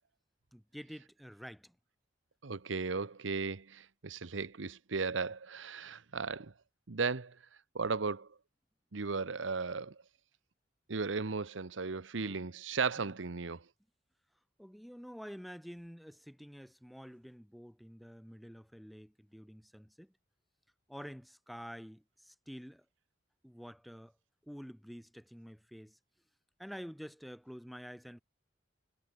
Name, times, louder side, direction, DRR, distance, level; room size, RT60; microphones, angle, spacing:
voice 1, 0.5-1.7 12.2-12.4 13.0-13.1 14.6-20.1 20.9-22.8 23.4-24.1 24.4-26.0 26.6-28.2, equal, ahead, 3.4 m, -49 dB
voice 2, 2.4-6.5 6.9-7.4 7.7-8.3 8.9-10.0 10.9-13.6, right 4 dB, 85° right, 0.9 m, -36 dB
head